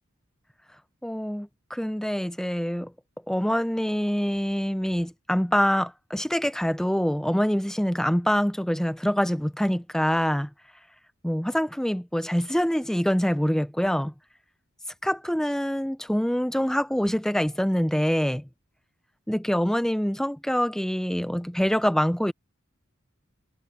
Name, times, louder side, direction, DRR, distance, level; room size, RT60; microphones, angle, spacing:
voice 1, 1.0-2.9 3.3-10.5 11.2-14.1 15.0-18.5 19.3-22.3, equal, 5° left, 0.5 m, -25 dB
head